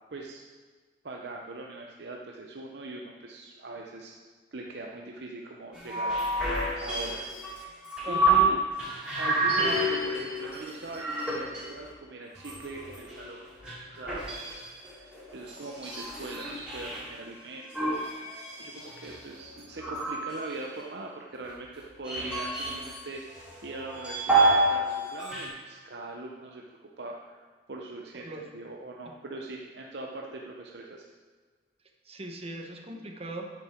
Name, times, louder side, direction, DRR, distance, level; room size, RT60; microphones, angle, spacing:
voice 1, 0.1-0.4 1.0-4.1 4.5-7.3 7.6-7.8 8.1-8.6 9.2-13.4 13.9-31.1, right 2 dB, 65° right, 0 dB, 0.7 m, -41 dB
sound 1, 5.7-8.5 8.8-11.9 12.3-17.0 17.7-20.8 21.5-23.0 23.3-24.8 25.1-25.5, right 1 dB, 5° right, 3.3 m, -29 dB
voice 2, 8.0-8.5 28.2-28.4 29.0-29.1 32.0-33.5, right 2 dB, 35° right, 2 dB, 1.2 m, -39 dB
9.9 x 9.6 x 4.4 m, 1.5 s
head